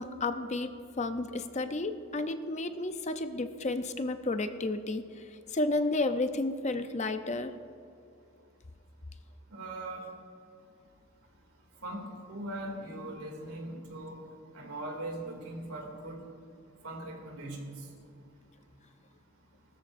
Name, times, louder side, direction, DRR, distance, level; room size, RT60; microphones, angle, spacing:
voice 1, 0.0-7.6, left 2 dB, 30° left, 9 dB, 0.6 m, -32 dB
voice 2, 9.5-10.1 11.8-14.2 14.5-16.2 16.8-17.7, right 1 dB, 80° right, 1 dB, 2.6 m, -40 dB
20.0 x 13.5 x 2.6 m, 2.6 s
head